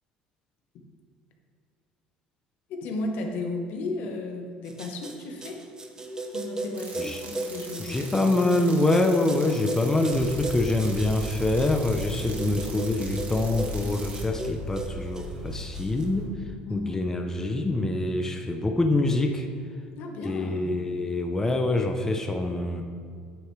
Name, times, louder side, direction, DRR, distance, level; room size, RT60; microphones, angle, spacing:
voice 1, 2.7-5.6 6.3-8.1 16.7-16.9 19.9-20.7, left 2 dB, 70° left, 3 dB, 1.2 m, -34 dB
sound 1, 4.7-16.0, right 2 dB, 20° right, 0.9 m, -36 dB
sound 2, 6.7-14.2, right 4 dB, 50° right, 1.6 m, -43 dB
voice 2, 7.8-16.3 16.7-19.5 20.2-22.8, left 2 dB, 15° left, 4 dB, 0.6 m, -25 dB
sound 3, 10.1-16.3, equal, 85° right, 1.9 m, -37 dB
9.3 x 6.4 x 3.2 m, 2.1 s
supercardioid pair, 85°, 3 cm